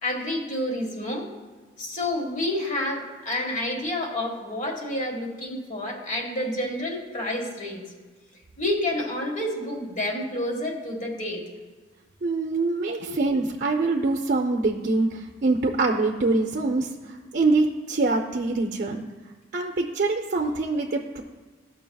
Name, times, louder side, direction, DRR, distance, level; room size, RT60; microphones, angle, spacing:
voice 1, 0.0-1.3 1.8-7.8 8.6-11.4 13.0-13.1 18.7-18.8, left 1 dB, 45° left, 0 dB, 1.5 m, -29 dB
voice 2, 12.2-19.0 19.5-21.2, right 3 dB, 55° right, 1 dB, 0.6 m, -24 dB
14.0 x 5.8 x 2.3 m, 1.4 s
head